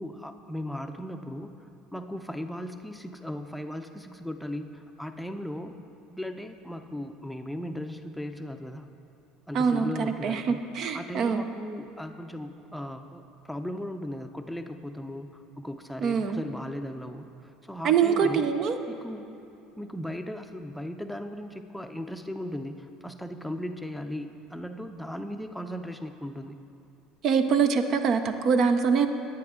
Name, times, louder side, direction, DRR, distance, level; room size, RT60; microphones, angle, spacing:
voice 1, 0.0-1.5 1.9-5.8 6.1-8.9 9.5-10.6 10.9-18.5 18.9-19.3 19.8-26.6, left 1 dB, ahead, 6 dB, 0.5 m, -37 dB
voice 2, 9.5-11.4 16.0-16.4 17.8-18.8 27.2-29.1, right 6 dB, 50° right, 8 dB, 0.5 m, -24 dB
10.5 x 9.0 x 3.7 m, 2.8 s
hypercardioid pair, 75°, 0 cm